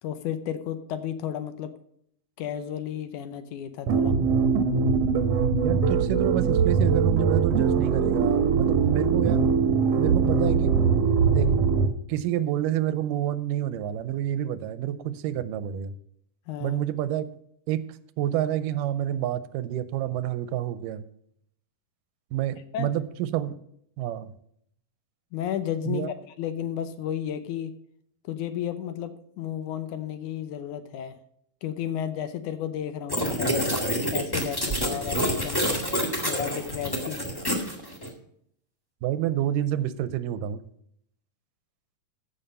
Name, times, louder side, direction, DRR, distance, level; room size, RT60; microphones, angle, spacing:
voice 1, 0.0-1.7 2.4-4.2 16.5-16.8 22.7-22.9 25.3-26.1 26.4-27.7 28.3-31.2 31.6-33.7 34.1-35.6 36.2-37.2, left 10 dB, 75° left, 10 dB, 2.1 m, -33 dB
sound 1, 3.9-11.9, right 5 dB, 65° right, 1.7 m, -22 dB
voice 2, 5.6-9.5 9.9-10.7 11.3-11.5 12.1-15.9 16.6-17.2 17.7-17.9 18.2-21.0 22.3-23.6 24.0-24.3 25.9-26.1 39.0-40.6, right 12 dB, 90° right, 14 dB, 2.3 m, -28 dB
sound 2, 33.1-38.1, equal, 15° left, 0.8 m, -27 dB
14.5 x 5.6 x 5.3 m, 0.71 s
omnidirectional pair, 3.8 m